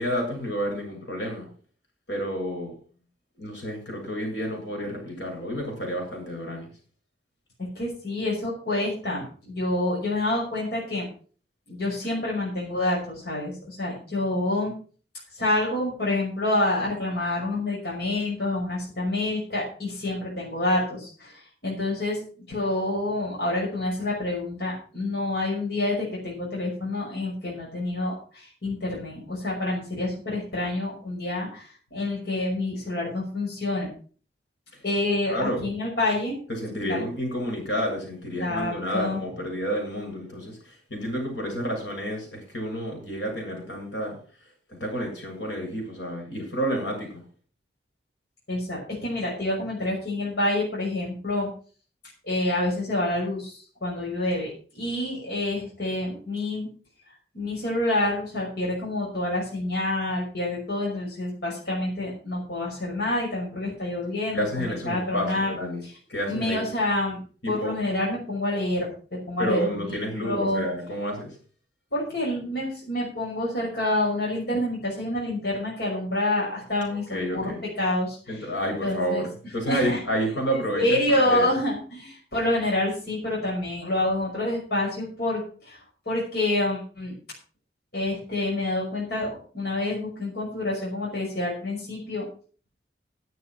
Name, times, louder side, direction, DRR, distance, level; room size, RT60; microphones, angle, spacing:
voice 1, 0.0-1.5 2.1-2.7 3.4-6.7 35.3-35.6 36.5-44.2 44.7-47.2 64.3-65.8 66.1-66.7 67.4-67.8 69.4-71.4 76.9-77.6 78.3-81.5, equal, 85° left, 2 dB, 7.8 m, -30 dB
voice 2, 7.7-11.1 11.7-14.7 15.3-33.9 34.8-36.4 36.9-37.1 38.4-39.2 48.5-51.5 52.2-56.7 57.3-65.5 66.3-67.2 67.5-70.7 71.9-78.4 78.8-79.2 79.7-80.0 80.5-85.8 86.1-87.1 87.9-92.3, left 1 dB, 65° left, -4 dB, 5.9 m, -27 dB
11.0 x 9.5 x 6.2 m, 0.41 s
head